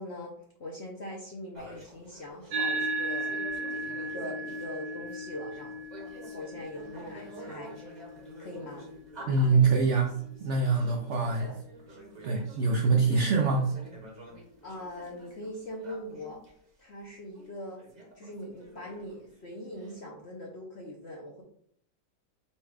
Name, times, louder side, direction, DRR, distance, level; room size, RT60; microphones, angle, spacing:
voice 1, 0.0-3.4 3.8-5.7 6.2-8.0 8.4-8.9 11.2-11.6 14.6-16.4 16.8-17.8 18.1-21.4, left 1 dB, 60° left, -2 dB, 0.7 m, -42 dB
sound 1, 1.5-16.5 17.0-17.1 17.3-20.0, right 1 dB, 30° right, 0.9 m, -48 dB
sound 2, 2.5-11.2, right 1 dB, 60° right, 1.6 m, -37 dB
voice 2, 9.3-11.5 12.2-13.7, right 4 dB, 90° right, 2 dB, 0.6 m, -24 dB
4.2 x 2.3 x 4.7 m, 0.66 s
omnidirectional pair, 1.9 m